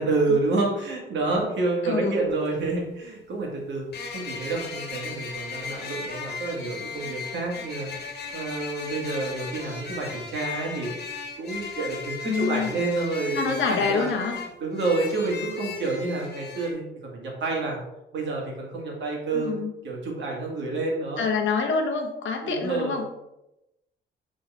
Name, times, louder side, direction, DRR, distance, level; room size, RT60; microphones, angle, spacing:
voice 1, 0.0-3.9 4.1-7.9 8.3-10.9 11.4-14.1 14.6-17.8 18.1-19.6 19.8-21.2 21.6-21.7 22.4-23.0, right 3 dB, 70° right, -1 dB, 1.9 m, -28 dB
voice 2, 1.8-2.1 12.3-12.8 13.3-14.3 19.3-19.7 21.2-23.0, left 5 dB, 75° left, 3 dB, 1.1 m, -26 dB
sound 1, 2.3-2.4 3.9-16.7, left 5 dB, 55° left, 1.6 m, -37 dB
6.4 x 3.9 x 4.1 m, 0.91 s
cardioid pair, 150°, 20 cm